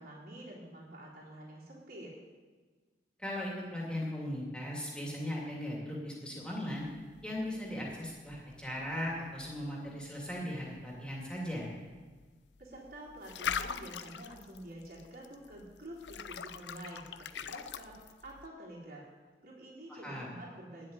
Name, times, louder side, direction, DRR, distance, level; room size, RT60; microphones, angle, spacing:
voice 1, 0.0-2.1 12.6-19.1 19.4-20.9, right 1 dB, 55° right, -5 dB, 3.7 m, -48 dB
voice 2, 3.2-6.9 7.2-11.7 19.9-20.3, left 1 dB, 5° left, -4 dB, 2.5 m, -38 dB
sound 1, 6.8-18.5, left 7 dB, 80° left, 0.5 m, -44 dB
10.0 x 7.6 x 9.6 m, 1.4 s
head